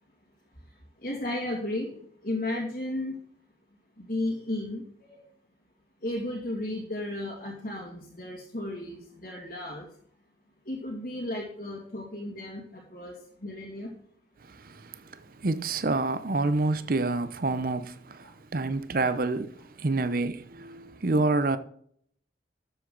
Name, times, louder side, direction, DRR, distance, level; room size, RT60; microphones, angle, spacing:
voice 1, 1.0-1.9 2.2-3.2 4.1-4.8 5.1-5.2 6.0-9.9 10.7-12.6 12.9-13.1 13.4-13.9, left 1 dB, 50° left, 2.2 m, -33 dB
voice 2, 14.4-21.6, right 3 dB, 50° right, 0.6 m, -28 dB
12.5 x 7.8 x 3.9 m
head